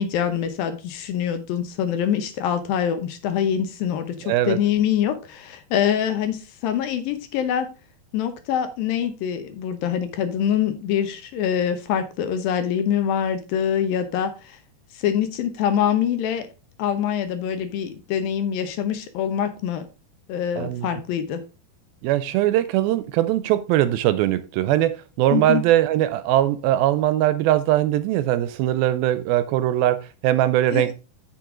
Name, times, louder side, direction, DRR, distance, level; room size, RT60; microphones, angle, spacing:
voice 1, 0.0-7.7 8.1-14.6 14.9-16.5 16.8-19.9 20.3-21.4 25.3-25.6 30.7-30.9, left 9 dB, 75° left, 2.4 m, -24 dB
voice 2, 4.2-4.6 20.6-20.9 22.0-30.9, right 13 dB, 80° right, 2.2 m, -21 dB
7.7 x 7.1 x 3.7 m
omnidirectional pair, 4.5 m